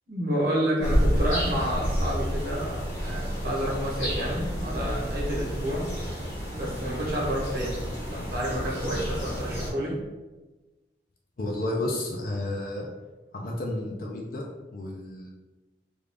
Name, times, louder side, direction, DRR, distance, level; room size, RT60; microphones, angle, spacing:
voice 1, 0.1-5.9 6.5-10.0, equal, 55° right, -5 dB, 1.1 m, -30 dB
sound 1, 0.8-9.7, equal, 90° left, 1.5 m, -30 dB
voice 2, 11.4-12.9 13.3-15.3, left 1 dB, 50° left, -1 dB, 0.4 m, -32 dB
3.4 x 2.4 x 3.4 m, 1.2 s
head